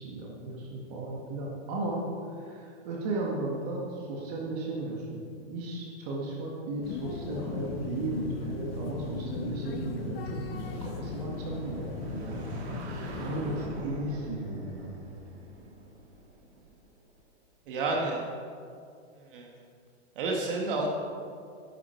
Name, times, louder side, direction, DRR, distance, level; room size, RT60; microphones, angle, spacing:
voice 1, 0.0-2.0 2.3-12.6 12.9-14.9, right 2 dB, 35° right, -2 dB, 1.9 m, -35 dB
sound 1, 6.8-13.7, left 5 dB, 55° left, 1.5 m, -38 dB
sound 2, 10.5-17.1, right 1 dB, 65° right, 2.8 m, -44 dB
voice 2, 17.7-18.2 19.1-19.5 20.2-20.9, right 3 dB, 50° right, 0 dB, 1.9 m, -30 dB
13.5 x 11.0 x 4.6 m, 2.4 s
hypercardioid pair, 165°, 35 cm